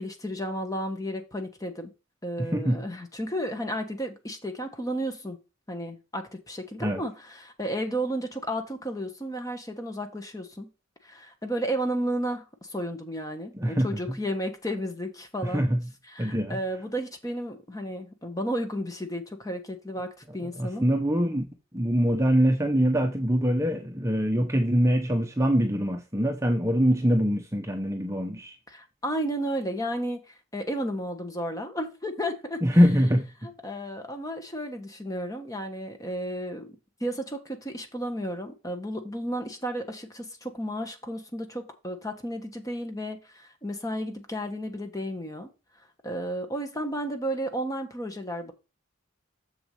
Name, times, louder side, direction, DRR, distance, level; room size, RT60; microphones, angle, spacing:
voice 1, 0.0-1.9 2.2-5.4 5.7-10.7 11.0-15.7 16.1-20.1 20.3-20.8 28.7-32.6 33.6-45.5 46.0-48.5, equal, 15° left, 1.4 m, -33 dB
voice 2, 2.4-2.8 6.8-7.0 13.5-13.9 15.4-15.9 16.2-16.6 20.4-21.4 21.7-28.5 32.6-33.3, equal, 15° right, 0.8 m, -24 dB
7.1 x 6.8 x 3.4 m
head